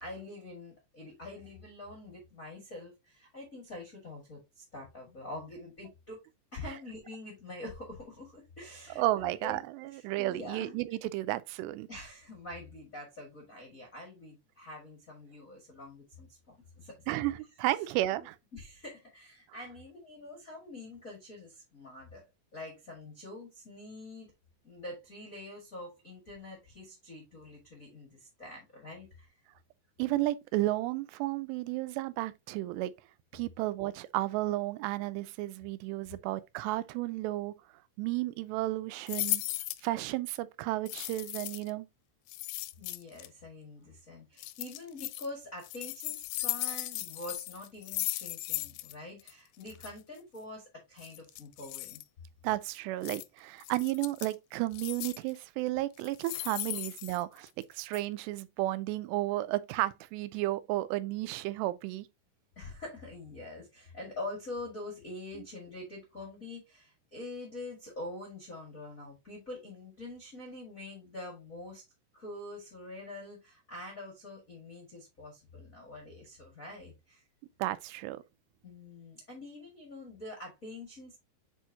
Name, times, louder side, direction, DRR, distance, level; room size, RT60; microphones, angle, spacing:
voice 1, 0.0-6.2 6.5-9.6 9.9-10.8 11.9-16.9 17.7-17.8 18.1-18.3 18.5-22.2 22.5-24.3 24.6-29.4 42.8-52.0 62.5-71.8 72.1-77.2 78.6-81.2, left 2 dB, 50° left, 0.9 m, -45 dB
voice 2, 9.0-11.9 17.1-18.4 30.0-32.9 33.3-37.5 38.0-39.4 39.8-41.9 52.4-62.1 77.6-78.2, right 16 dB, 90° right, 2.8 m, -33 dB
sound 1, 39.1-39.9 40.9-41.7 42.3-43.3 44.4-45.3 45.6-48.9 49.2-49.3 49.6-49.9 51.0-52.0 53.0-53.2 53.6-54.3 54.7-55.3 56.0-57.6 57.9-58.0, left 19 dB, 85° left, 2.5 m, -37 dB
8.2 x 4.4 x 2.8 m
omnidirectional pair, 4.8 m